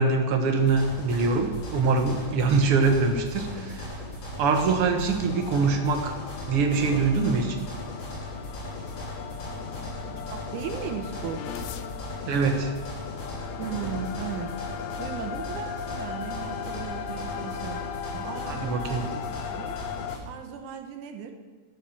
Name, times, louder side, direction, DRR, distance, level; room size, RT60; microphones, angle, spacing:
voice 1, 0.0-3.9 4.4-6.1 6.5-7.6 12.3-12.7 18.1-19.0, right 4 dB, 60° right, 5 dB, 1.8 m, -24 dB
sound 1, 0.6-20.2, left 1 dB, 50° left, 4.0 m, -37 dB
sound 2, 5.3-20.2, left 8 dB, 80° left, 1.9 m, -38 dB
voice 2, 9.1-11.4 13.6-14.5 15.0-17.8 18.2-19.8 20.3-21.3, right 7 dB, 90° right, 5 dB, 2.5 m, -37 dB
12.0 x 5.9 x 7.2 m, 1.4 s
omnidirectional pair, 3.4 m